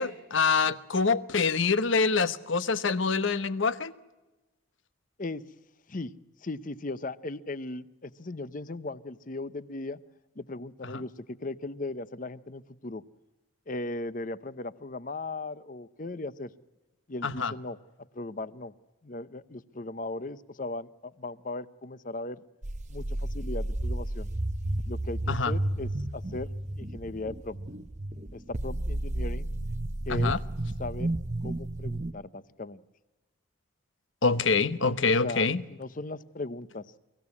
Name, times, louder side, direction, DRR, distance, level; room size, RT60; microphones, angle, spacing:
voice 1, 0.0-3.9 10.9-11.0 17.2-17.5 25.3-25.6 30.1-30.4 34.2-35.6, left 4 dB, 65° left, 14 dB, 1.0 m, -26 dB
voice 2, 6.4-10.0 10.4-13.0 13.7-16.5 17.1-17.8 18.1-18.7 19.0-22.4 22.9-24.3 24.9-26.5 26.8-27.6 28.3-29.5 30.1-30.3 30.8-31.1 31.4-32.8 35.2-36.9, left 2 dB, 40° left, 16 dB, 0.7 m, -37 dB
sound 1, 22.6-32.1, right 1 dB, 35° right, 0.8 m, -32 dB
24.5 x 15.5 x 9.7 m, 1.1 s
head